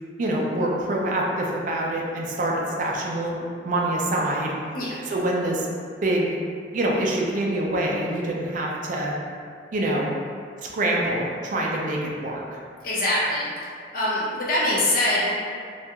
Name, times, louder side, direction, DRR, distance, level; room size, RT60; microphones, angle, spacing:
voice 1, 0.2-4.5 5.1-5.7 6.0-6.3 6.7-9.1 9.7-10.1 10.7-12.6, right 1 dB, 45° right, -2 dB, 0.4 m, -25 dB
voice 2, 12.8-13.5 13.9-15.3, left 1 dB, 50° left, -7 dB, 0.6 m, -23 dB
2.3 x 2.2 x 2.8 m, 2.2 s
head